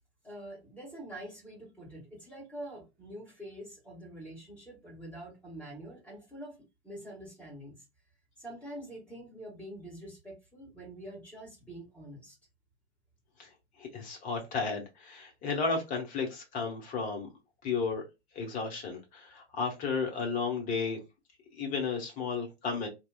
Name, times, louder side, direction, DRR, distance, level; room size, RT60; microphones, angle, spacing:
voice 1, 0.2-6.6 6.8-7.8 8.4-12.3, right 1 dB, 5° left, 1.5 m, -45 dB
voice 2, 13.8-17.3 17.6-18.0 18.3-21.0 21.5-22.9, left 5 dB, 25° left, 0.9 m, -33 dB
2.9 x 2.3 x 2.3 m
figure-of-eight pair, 105°, 34 cm